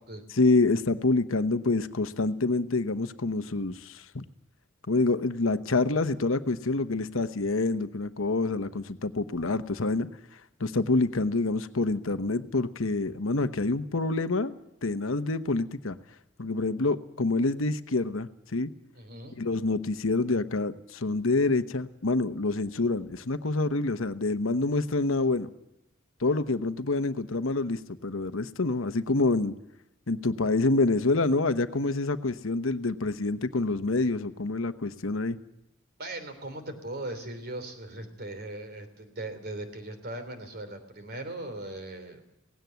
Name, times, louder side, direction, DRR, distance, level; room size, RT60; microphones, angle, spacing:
voice 1, 0.3-4.2 4.9-10.1 10.6-14.5 14.8-16.0 16.4-18.7 19.4-25.5 26.2-29.5 30.1-35.4, left 3 dB, 70° left, 11 dB, 1.0 m, -27 dB
voice 2, 18.9-19.4 36.0-42.2, right 1 dB, 50° right, 8 dB, 3.3 m, -39 dB
18.0 x 16.5 x 9.3 m, 0.85 s
head